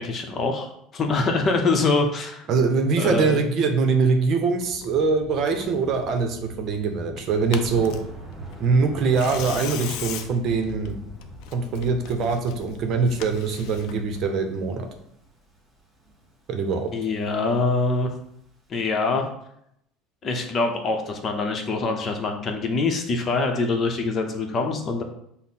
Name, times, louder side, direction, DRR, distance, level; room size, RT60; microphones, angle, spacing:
voice 1, 0.0-2.5 3.0-3.4 16.9-18.1 18.7-19.3 20.2-25.0, left 3 dB, 40° left, 3 dB, 0.8 m, -24 dB
voice 2, 2.5-7.9 8.6-11.0 11.5-14.9 16.5-16.9, right 4 dB, 55° right, 5 dB, 0.7 m, -23 dB
Tearing, 4.6-14.2, left 8 dB, 70° left, 0.4 m, -40 dB
Thunder, 7.4-18.5, equal, 25° right, 1.6 m, -43 dB
5.4 x 2.1 x 4.2 m, 0.73 s
supercardioid pair, 105°, 0 cm